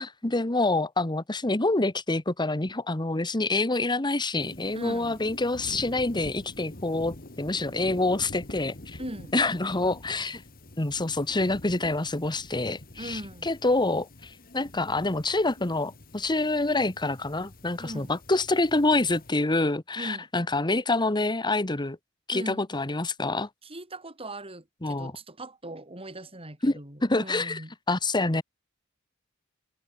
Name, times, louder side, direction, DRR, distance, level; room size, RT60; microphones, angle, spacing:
voice 1, 0.0-9.0 9.3-10.4 10.8-22.0 22.3-23.5 24.8-25.1 26.6-27.6 27.9-28.4, left 2 dB, 20° left, 1.3 m, -27 dB
sound 1, 4.4-19.3, left 1 dB, 45° left, 2.3 m, -46 dB
voice 2, 4.7-5.2 9.0-9.3 13.0-13.5 17.8-18.1 20.0-20.3 22.3-22.7 23.6-27.7, right 1 dB, 30° right, 7.5 m, -40 dB
head